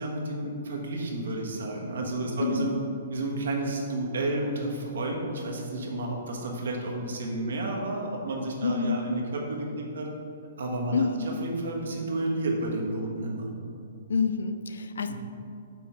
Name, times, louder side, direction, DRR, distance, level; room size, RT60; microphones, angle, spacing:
voice 1, 0.0-2.8 3.1-10.1 10.6-10.9 11.2-13.5 15.1-15.2, right 2 dB, 80° right, 0 dB, 1.2 m, -31 dB
voice 2, 2.4-2.8 8.6-9.0 10.9-11.4 14.1-15.1, left 4 dB, 90° left, 10 dB, 0.4 m, -28 dB
6.0 x 3.6 x 5.7 m, 2.6 s
hypercardioid pair, 155°, 0 cm